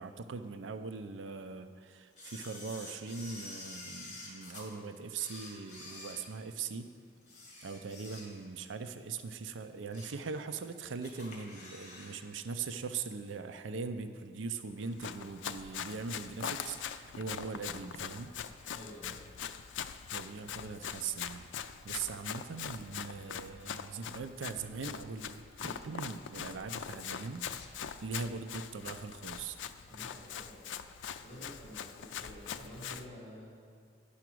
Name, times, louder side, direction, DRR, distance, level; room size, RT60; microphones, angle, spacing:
voice 1, 0.0-6.9 7.6-18.3 20.1-21.5 21.8-27.5 28.0-29.6, right 5 dB, 85° right, 9 dB, 0.5 m, -41 dB
Camera, 2.2-4.7 5.1-6.8 7.2-8.6 9.0-9.1 9.6-10.3 10.6-10.7 11.0-12.2 12.4-12.5, left 2 dB, 40° left, 1.9 m, -48 dB
Run, 14.8-33.1, left 8 dB, 80° left, 0.4 m, -42 dB
voice 2, 18.7-19.2 29.9-30.6 31.2-33.6, equal, 10° left, -11 dB, 2.1 m, -50 dB
sound 1, 27.3-27.8 28.1-28.2, left 5 dB, 60° left, 0.8 m, -58 dB
10.0 x 5.9 x 6.1 m, 2.1 s
head